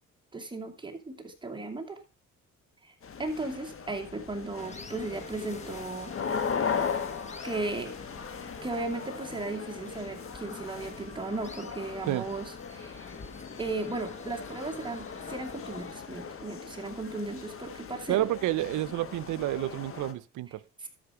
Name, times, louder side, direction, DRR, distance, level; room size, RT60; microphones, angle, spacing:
voice 1, 0.3-2.0 2.8-2.9 3.2-6.2 7.4-7.9 8.6-13.1 13.6-18.3 20.8-20.9, right 2 dB, 15° right, 2.4 m, -36 dB
sound 1, 3.0-20.1, left 6 dB, 45° left, 1.4 m, -38 dB
sound 2, 4.6-16.0, left 3 dB, 25° left, 1.2 m, -47 dB
voice 2, 18.1-20.6, right 15 dB, 80° right, 0.6 m, -29 dB
13.0 x 5.2 x 4.7 m
cardioid pair, 90°, 30 cm